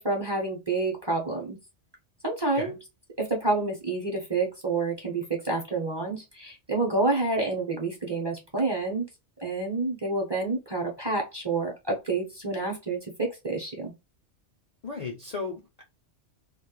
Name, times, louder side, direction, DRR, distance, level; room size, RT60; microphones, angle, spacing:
voice 1, 0.0-1.6 2.2-2.7 3.2-9.1 9.4-13.9, right 3 dB, 30° right, 0.6 m, -28 dB
voice 2, 14.8-15.8, left 4 dB, 50° left, 0.5 m, -35 dB
2.2 x 2.0 x 3.0 m
omnidirectional pair, 1.1 m